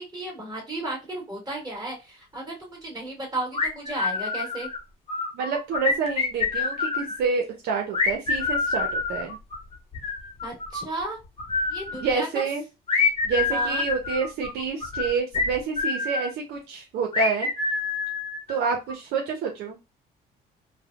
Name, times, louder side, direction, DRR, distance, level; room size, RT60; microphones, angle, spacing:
voice 1, 0.0-4.7 10.4-11.2 11.7-12.4 13.5-13.8, right 1 dB, 25° right, -2 dB, 1.8 m, -34 dB
sound 1, 3.5-4.8 5.1-7.2 7.9-11.1 11.4-12.1 12.9-16.3 17.1-18.9, left 4 dB, 35° left, 0.9 m, -27 dB
voice 2, 5.3-9.4 12.0-12.6 13.2-17.5 18.5-19.8, right 5 dB, 75° right, 2 dB, 0.7 m, -28 dB
3.3 x 2.1 x 2.3 m, 0.25 s
cardioid pair, 110°, 17 cm